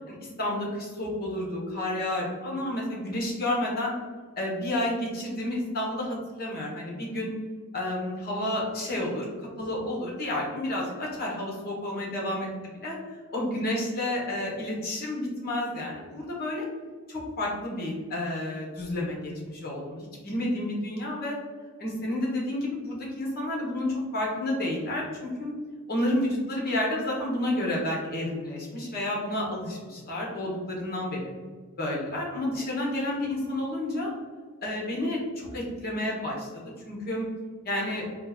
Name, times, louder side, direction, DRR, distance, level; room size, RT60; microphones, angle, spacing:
voice 1, 0.1-3.9 4.4-7.3 7.7-12.5 12.8-12.9 13.3-16.6 17.1-21.4 21.8-25.5 25.9-29.6 30.1-31.3 31.8-34.1 34.6-37.3 37.6-38.0, left 1 dB, 45° left, -3 dB, 1.1 m, -30 dB
4.2 x 2.4 x 3.5 m, 1.5 s
head